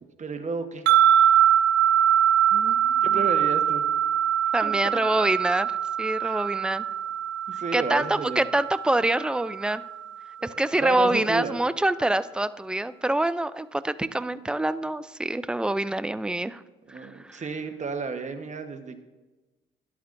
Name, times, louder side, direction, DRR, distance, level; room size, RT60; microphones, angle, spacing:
voice 1, 0.2-0.8 3.0-4.0 4.6-4.7 6.2-6.4 7.5-8.4 10.4-11.6 16.9-19.0, right 4 dB, 35° right, 7 dB, 1.1 m, -32 dB
sound 1, 0.9-10.1, right 9 dB, 70° right, 0.7 m, -23 dB
voice 2, 2.5-3.3 4.5-6.9 7.7-9.8 10.4-16.6 16.9-17.4, right 1 dB, 5° right, 14 dB, 0.3 m, -26 dB
12.5 x 10.5 x 2.6 m, 1.2 s
cardioid pair, 90°, 20 cm